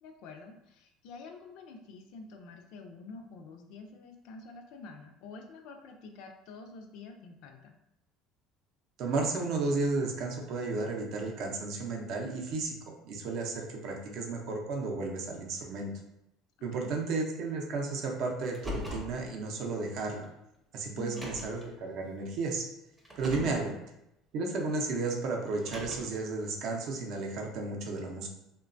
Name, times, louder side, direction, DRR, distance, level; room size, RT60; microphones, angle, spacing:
voice 1, 0.0-7.7 16.7-16.9 21.0-21.3 23.3-23.8, left 3 dB, 65° left, 4 dB, 0.4 m, -47 dB
voice 2, 9.0-15.9 16.6-20.3 20.7-22.7 23.2-23.7 24.3-28.3, right 3 dB, 55° right, 1 dB, 0.5 m, -33 dB
Car, 18.4-19.2 20.2-20.3 21.0-21.6 23.0-23.7 25.5-26.2, left 2 dB, 5° right, 0.6 m, -40 dB
3.0 x 2.2 x 2.5 m, 0.84 s
cardioid pair, 140°, 0 cm